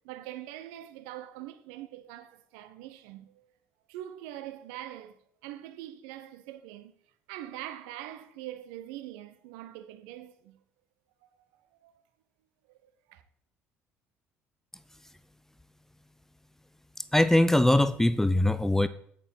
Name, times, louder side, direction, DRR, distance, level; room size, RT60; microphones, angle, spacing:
voice 1, 0.0-3.5 3.9-6.9 7.3-10.6 11.2-11.5 11.8-11.9 12.7-13.2, right 13 dB, 65° right, 1.0 m, -43 dB
voice 2, 17.1-18.9, left 1 dB, 5° left, 0.6 m, -22 dB
9.1 x 8.7 x 4.6 m
figure-of-eight pair, 55°, 6 cm